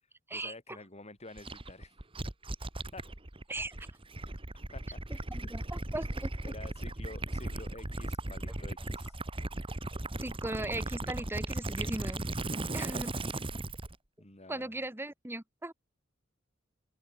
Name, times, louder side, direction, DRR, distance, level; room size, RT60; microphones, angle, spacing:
voice 1, 0.3-1.9 2.9-3.0 4.7-5.5 6.4-9.1 12.7-13.0 14.2-14.7, left 2 dB, 35° left, 6.1 m, -49 dB
Gurgling / Liquid, 1.4-14.0, right 2 dB, 25° right, 1.7 m, -37 dB
voice 2, 5.1-6.3 10.2-12.2 12.7-13.1 14.5-15.7, right 1 dB, 10° right, 1.7 m, -38 dB
open air
head